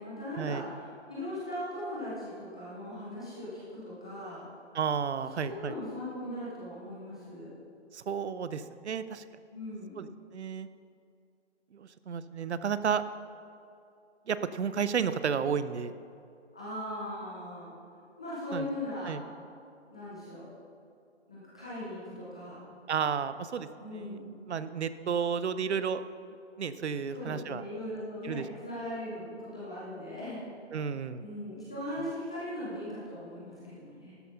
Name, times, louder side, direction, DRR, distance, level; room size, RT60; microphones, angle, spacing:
voice 1, 0.0-4.4 5.4-7.5 9.5-10.0 16.5-17.7 18.2-19.1 19.9-20.4 21.3-22.7 23.8-24.3 27.1-30.4 31.2-34.1, left 1 dB, 5° left, -9 dB, 0.4 m, -39 dB
voice 2, 4.7-5.7 7.9-9.2 10.0-10.1 10.3-10.7 11.7-13.0 14.3-15.9 18.5-18.7 19.0-19.2 22.9-23.7 23.9-24.1 24.5-26.0 26.6-27.6 28.2-28.4 30.7-31.2, right 7 dB, 70° right, 13 dB, 0.7 m, -32 dB
12.0 x 7.6 x 5.8 m, 2.5 s
figure-of-eight pair, 145°, 35 cm